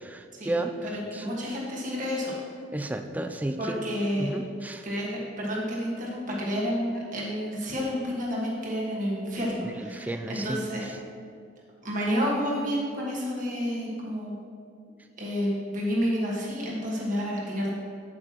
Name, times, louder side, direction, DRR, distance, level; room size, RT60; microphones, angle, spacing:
voice 1, 0.0-1.4 2.7-3.8 4.2-4.8 9.6-10.6, right 1 dB, 10° right, 6 dB, 0.3 m, -33 dB
voice 2, 0.8-2.3 3.6-4.3 4.8-10.9 11.8-14.3 15.2-17.7, equal, 45° right, -3 dB, 1.5 m, -30 dB
7.9 x 7.8 x 3.0 m, 2.3 s
head